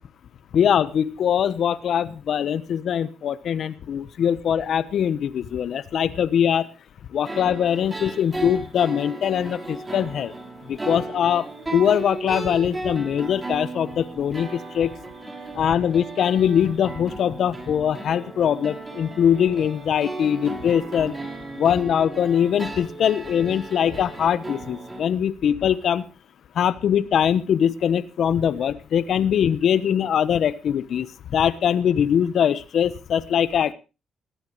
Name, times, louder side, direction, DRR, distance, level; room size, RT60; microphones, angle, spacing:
voice 1, 0.5-6.7 7.1-10.3 10.7-11.5 11.7-14.9 15.5-21.1 21.5-26.0 26.6-31.1 31.3-33.7, left 9 dB, 65° left, 15 dB, 1.0 m, -22 dB
sound 1, 7.2-25.0, right 2 dB, 20° right, 6.3 m, -35 dB
20.5 x 15.0 x 3.1 m, 0.31 s
cardioid pair, 90°, 0 cm